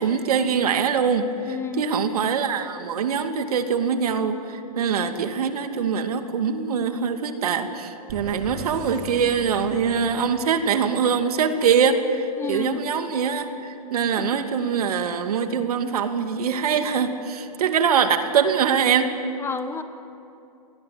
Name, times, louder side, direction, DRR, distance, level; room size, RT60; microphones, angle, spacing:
voice 1, 0.0-19.1, right 6 dB, 70° right, 7 dB, 2.6 m, -23 dB
voice 2, 1.5-1.9 12.4-12.8 14.3-14.4 19.4-19.8, left 5 dB, 10° left, 10 dB, 1.1 m, -31 dB
sound 1, 8.1-10.9, right 3 dB, 45° right, 5.4 m, -39 dB
28.0 x 19.5 x 9.7 m, 2.7 s
hypercardioid pair, 135°, 20 cm